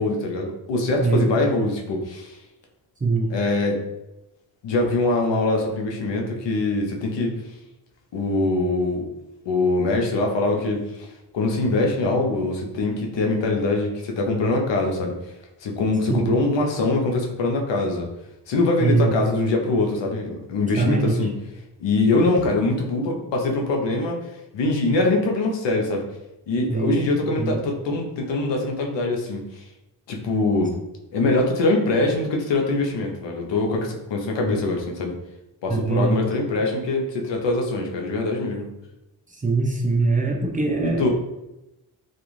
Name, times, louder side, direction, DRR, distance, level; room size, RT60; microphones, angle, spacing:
voice 1, 0.0-2.4 3.3-3.8 4.6-7.4 8.1-9.0 9.5-15.1 15.6-18.1 18.5-21.3 21.8-24.2 24.5-26.0 26.5-29.6 30.1-30.7 31.1-35.1 35.6-38.7 40.8-41.1, left 2 dB, 75° left, 1 dB, 0.7 m, -23 dB
voice 2, 3.0-3.3 16.1-16.4 18.8-19.1 20.8-21.3 26.7-27.0 27.4-27.6 34.4-34.6 35.7-36.2 39.4-41.1, right 3 dB, 20° right, 0 dB, 0.4 m, -22 dB
2.4 x 2.4 x 3.0 m, 0.95 s
cardioid pair, 70°, 44 cm